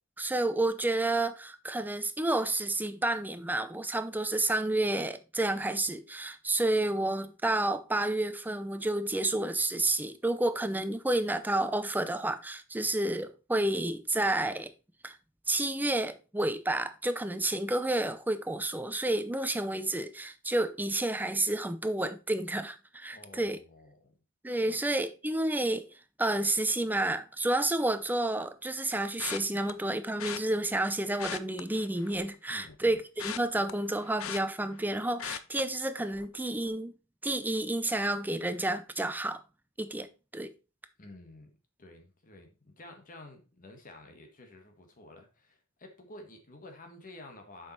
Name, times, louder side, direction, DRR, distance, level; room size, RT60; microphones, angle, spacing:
voice 1, 0.2-14.7 15.0-15.2 15.5-23.6 24.4-25.9 26.2-36.9 37.2-39.4 39.8-40.1 40.3-40.5, right 2 dB, 10° right, 0.6 m, -30 dB
voice 2, 23.1-24.2 24.7-24.8 32.5-33.0 41.0-41.5 41.8-47.7, left 2 dB, 40° left, 1.5 m, -51 dB
sound 1, 29.2-29.7 30.2-30.4 31.1-32.3 32.7-34.9 35.2-35.6 36.1-36.3 36.6-36.7, left 9 dB, 75° left, 0.6 m, -39 dB
7.5 x 5.4 x 4.2 m
head